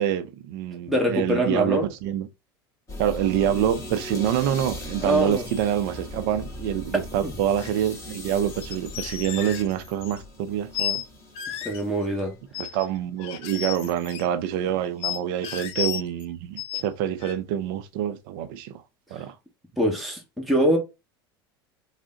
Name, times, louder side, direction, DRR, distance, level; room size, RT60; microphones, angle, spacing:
voice 1, 0.0-2.3 3.0-11.0 12.6-18.7 19.1-19.3, right 10 dB, 65° right, 0.5 m, -26 dB
voice 2, 0.9-1.9 5.0-5.4 7.2-7.3 11.6-12.3 19.1-19.2 19.8-20.8, right 1 dB, ahead, 1.0 m, -23 dB
sound 1, 2.9-14.0 14.3-14.6, left 1 dB, 25° left, 1.8 m, -39 dB
sound 2, 7.6-7.8 8.5-10.2 10.7-11.0 11.3-11.8 12.5-12.9 13.2-14.3 15.0-16.2 16.6-16.8 17.2-17.3, left 11 dB, 50° left, 0.6 m, -33 dB
3.6 x 2.1 x 3.7 m
hypercardioid pair, 85°, 12 cm